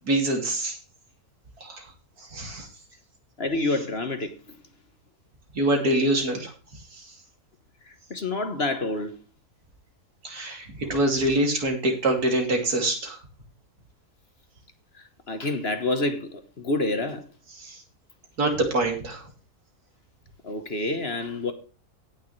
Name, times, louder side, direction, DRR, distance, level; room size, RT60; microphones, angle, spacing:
voice 1, 0.1-0.8 1.6-1.9 2.3-2.7 5.5-6.5 10.2-13.2 17.6-17.8 18.4-19.2, right 1 dB, 70° right, 3.3 m, -25 dB
voice 2, 3.4-4.3 7.9-9.1 15.3-17.2 20.4-21.5, left 2 dB, 40° left, 1.4 m, -28 dB
17.5 x 6.8 x 3.2 m
omnidirectional pair, 1.6 m